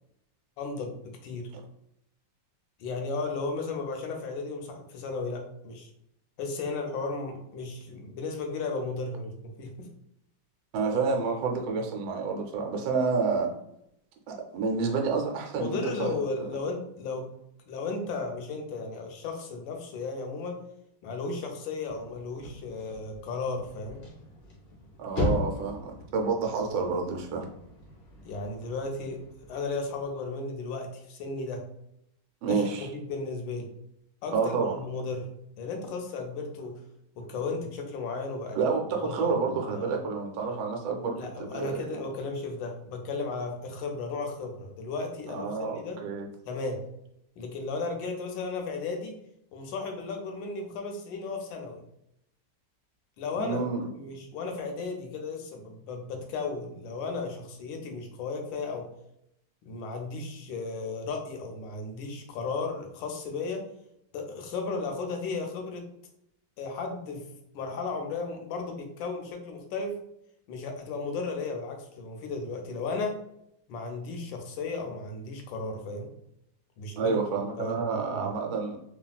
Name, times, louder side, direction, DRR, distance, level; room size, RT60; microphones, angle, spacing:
voice 1, 0.6-1.5 2.8-5.9 6.4-9.9 15.6-17.3 17.7-20.6 21.0-24.0 28.2-29.2 29.5-31.6 32.4-33.7 34.2-35.3 35.6-36.8 37.2-38.6 39.0-39.3 39.6-40.0 41.2-46.0 46.5-46.8 47.4-49.2 49.5-51.8 53.2-53.6 53.9-58.9 59.6-63.6 64.1-65.9 66.6-67.2 67.5-69.9 70.5-73.2 73.7-76.1 76.8-77.2 77.6-78.3, left 3 dB, 85° left, 3 dB, 1.3 m, -35 dB
voice 2, 10.7-13.5 14.3-16.2 25.0-27.5 32.4-32.9 34.3-34.7 38.5-42.1 45.3-46.3 53.3-53.9 77.0-78.8, right 4 dB, 80° right, 2 dB, 1.3 m, -29 dB
sound 1, 21.9-30.2, left 2 dB, 65° left, 0.6 m, -38 dB
3.3 x 2.3 x 2.2 m, 0.78 s
omnidirectional pair, 2.0 m